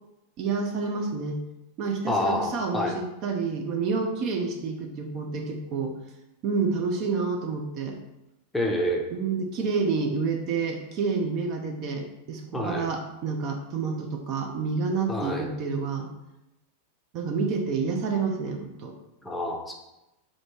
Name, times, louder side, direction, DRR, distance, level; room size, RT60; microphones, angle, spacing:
voice 1, 0.4-1.4 1.8-5.9 6.4-8.0 9.1-16.1 17.1-18.9, right 4 dB, 40° right, 2 dB, 0.6 m, -29 dB
voice 2, 2.1-2.9 8.5-9.0 12.5-12.8 15.1-15.5 19.2-19.7, left 1 dB, 5° left, 0 dB, 0.6 m, -27 dB
3.8 x 2.9 x 3.5 m, 0.94 s
figure-of-eight pair, 90°, 0 cm